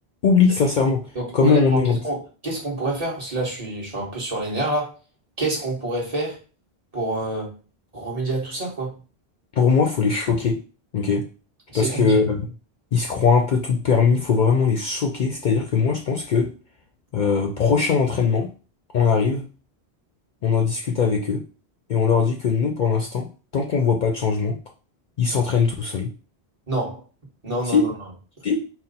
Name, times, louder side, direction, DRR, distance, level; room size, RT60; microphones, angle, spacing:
voice 1, 0.2-1.0 1.3-2.0 9.5-10.6 10.9-11.2 11.7-12.5 12.9-16.5 17.1-18.5 18.9-19.5 20.4-21.4 21.9-23.3 23.5-24.6 25.2-26.1 27.7-27.9 28.4-28.6, left 5 dB, 55° left, 2 dB, 0.6 m, -20 dB
voice 2, 1.1-4.9 5.4-6.4 6.9-7.5 7.9-9.0 11.7-12.2 26.7-27.0 27.4-27.9, right 2 dB, 35° right, -4 dB, 1.3 m, -27 dB
4.2 x 2.0 x 4.0 m, 0.35 s
omnidirectional pair, 1.1 m